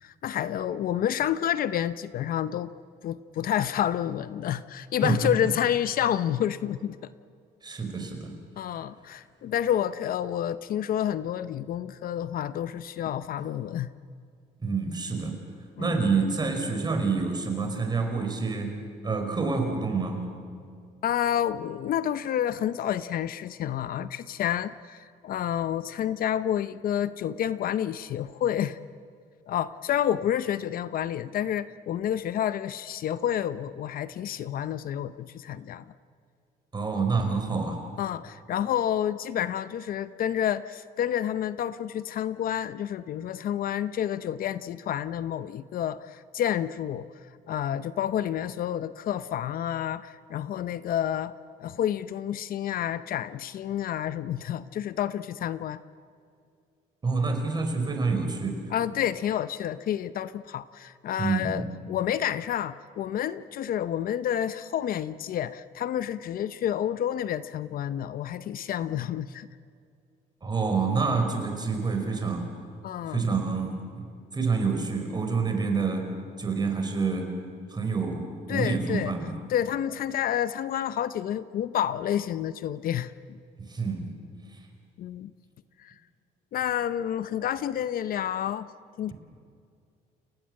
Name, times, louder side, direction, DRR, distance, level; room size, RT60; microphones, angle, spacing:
voice 1, 0.0-2.7 3.0-7.0 8.6-13.9 15.8-16.0 21.0-28.8 29.5-35.8 38.0-47.1 47.5-51.3 51.6-55.8 58.7-69.5 72.8-73.2 78.5-79.1 79.5-83.4 85.0-85.3 85.8-85.9 86.5-88.7 89.0-89.1, left 10 dB, 60° left, 14 dB, 0.8 m, -29 dB
voice 2, 7.6-8.3 14.6-15.4 15.8-18.8 19.0-20.3 36.7-37.8 57.0-58.7 61.2-61.7 70.4-72.5 73.1-74.1 74.3-76.1 76.4-77.3 77.7-79.4 83.6-84.1 84.5-84.6, right 4 dB, 25° right, 4 dB, 5.0 m, -27 dB
29.0 x 18.0 x 7.7 m, 2.3 s
cardioid pair, 110°, 17 cm